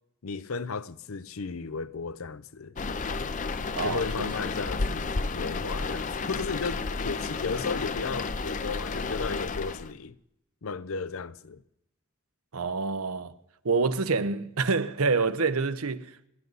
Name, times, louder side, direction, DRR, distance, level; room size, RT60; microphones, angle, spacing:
voice 1, 0.2-2.7 3.8-5.1 5.3-10.2 10.6-11.6, left 4 dB, 75° left, 0.6 m, -34 dB
sound 1, 2.8-9.9, left 4 dB, 35° left, 0.6 m, -32 dB
voice 2, 3.7-4.3 12.5-13.3 13.6-16.3, right 4 dB, 85° right, 0.9 m, -27 dB
29.5 x 11.0 x 4.0 m
head